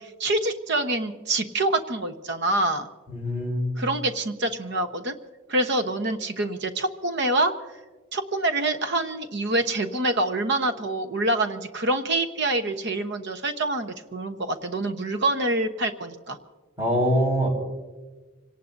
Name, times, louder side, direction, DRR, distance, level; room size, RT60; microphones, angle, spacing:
voice 1, 0.0-2.9 3.8-5.1 5.5-7.5 8.1-16.4, right 2 dB, 55° right, 8 dB, 1.0 m, -26 dB
voice 2, 3.1-3.7 16.8-17.5, equal, 10° right, -3 dB, 4.8 m, -23 dB
26.5 x 18.0 x 2.7 m, 1.3 s
head